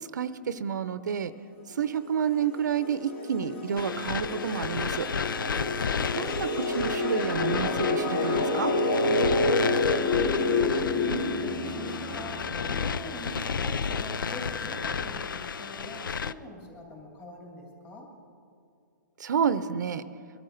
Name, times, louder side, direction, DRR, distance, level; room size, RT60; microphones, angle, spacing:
voice 1, 0.1-1.3 1.7-5.1 6.1-8.7 19.2-20.1, right 7 dB, 60° right, 13 dB, 0.7 m, -29 dB
sound 1, 2.0-12.5, left 2 dB, 35° left, 1.3 m, -28 dB
sound 2, 3.8-16.3, left 6 dB, 85° left, 0.5 m, -32 dB
voice 2, 5.4-6.4 9.1-18.1, left 1 dB, 15° left, -2 dB, 3.0 m, -44 dB
sound 3, 9.9-15.2, right 4 dB, 10° right, 0.7 m, -45 dB
23.0 x 12.5 x 3.9 m, 2.4 s
hypercardioid pair, 165°, 11 cm